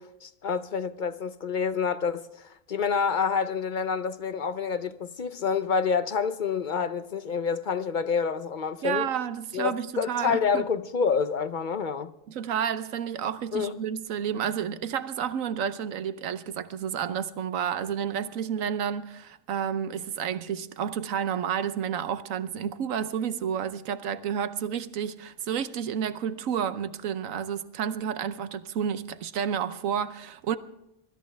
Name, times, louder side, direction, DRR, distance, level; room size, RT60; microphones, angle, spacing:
voice 1, 0.0-9.1 9.5-12.1 13.5-13.8, left 6 dB, 45° left, 0.7 m, -28 dB
voice 2, 8.8-10.6 12.3-30.6, right 8 dB, 85° right, 1.2 m, -30 dB
23.5 x 13.5 x 3.4 m
omnidirectional pair, 1.4 m